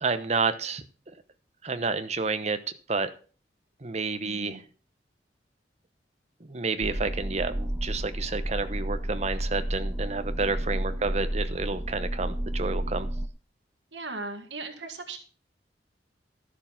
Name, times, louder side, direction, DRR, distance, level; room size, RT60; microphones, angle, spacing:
voice 1, 0.0-0.8 1.6-2.6 2.9-3.1 3.8-4.6 6.5-13.1, right 4 dB, 40° right, 10 dB, 0.9 m, -30 dB
voice 2, 4.2-4.6 10.7-11.1 13.9-15.2, right 3 dB, 85° right, 4 dB, 1.8 m, -39 dB
sound 1, 6.8-13.3, right 1 dB, 15° right, 1.1 m, -31 dB
12.5 x 6.6 x 5.8 m, 0.39 s
head